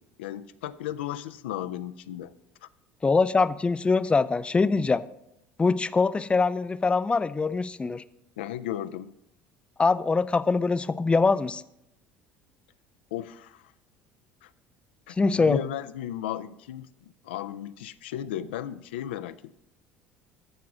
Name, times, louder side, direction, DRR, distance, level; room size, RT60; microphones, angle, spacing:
voice 1, 0.2-2.3 2.6-2.7 8.4-9.1 13.1-13.7 14.4-14.5 15.1-16.9 17.2-19.5, left 11 dB, 80° left, 12 dB, 0.4 m, -35 dB
voice 2, 3.0-5.0 5.6-8.0 9.8-11.6 15.2-15.6, left 4 dB, 20° left, 16 dB, 0.4 m, -23 dB
13.5 x 4.7 x 6.1 m, 0.81 s
hypercardioid pair, 65°, 6 cm